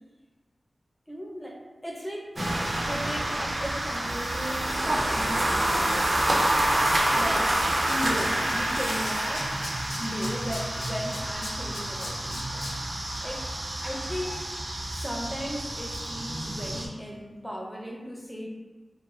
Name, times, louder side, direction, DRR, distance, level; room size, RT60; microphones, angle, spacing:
voice 1, 1.1-2.3 2.9-6.5 7.1-7.5 7.9-9.5 10.0-12.6 13.2-13.5 13.8-14.4 14.9-18.5, equal, 5° left, 0 dB, 0.4 m, -36 dB
Acoustic guitar / Strum, 2.3-7.3, right 1 dB, 40° left, 0.8 m, -42 dB
sound 1, 2.4-16.9, right 1 dB, 60° right, 0.4 m, -28 dB
Tools, 7.3-7.4 7.6-8.8 9.0-12.7 13.1-13.2, left 2 dB, 70° left, 0.4 m, -39 dB
2.4 x 2.2 x 2.9 m, 1.3 s
wide cardioid pair, 80°, 0 cm